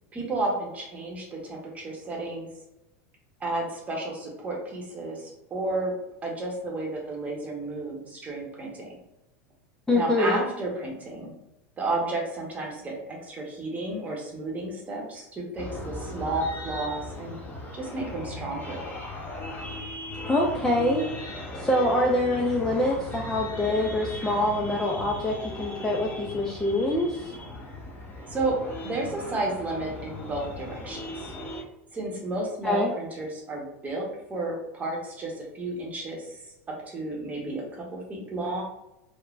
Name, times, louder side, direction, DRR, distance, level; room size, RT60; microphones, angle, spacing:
voice 1, 0.1-2.5 3.4-6.0 6.2-8.9 9.9-11.3 11.8-17.4 17.7-18.9 28.3-28.5 28.8-31.3 31.9-36.5 36.9-38.6, right 2 dB, 20° right, -1 dB, 0.9 m, -32 dB
voice 2, 9.9-10.4 20.2-21.0 21.5-27.3 32.6-32.9, left 1 dB, 10° left, -2 dB, 0.3 m, -25 dB
sound 1, 15.6-31.6, left 1 dB, 25° left, 0.7 m, -38 dB
3.1 x 2.1 x 2.4 m, 0.90 s
supercardioid pair, 125°, 7 cm